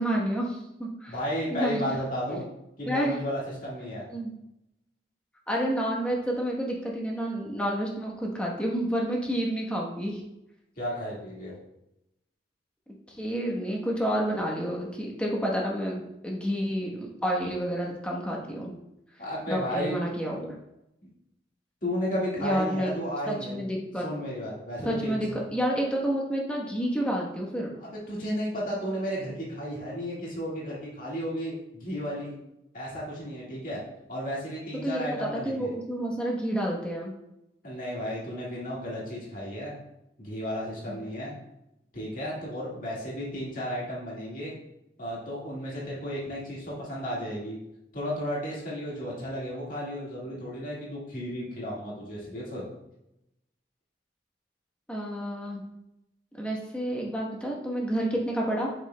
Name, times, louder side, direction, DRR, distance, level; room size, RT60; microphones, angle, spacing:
voice 1, 0.0-1.1 1.5-1.8 2.8-3.1 4.1-4.3 5.5-10.2 13.1-18.7 19.5-20.6 22.4-22.9 23.3-24.0 24.8-27.7 34.8-37.1 40.9-41.0 54.9-55.7 56.3-58.7, equal, 5° left, -2 dB, 1.1 m, -29 dB
voice 2, 1.1-2.4 2.8-4.0 10.8-11.5 19.2-20.0 21.0-21.1 21.8-23.6 24.0-25.3 27.8-32.4 32.7-33.8 34.1-35.7 37.6-39.8 40.2-41.4 41.9-44.6 45.0-47.6 47.9-52.6, equal, 50° left, -6 dB, 1.9 m, -33 dB
7.9 x 6.1 x 2.3 m, 0.87 s
head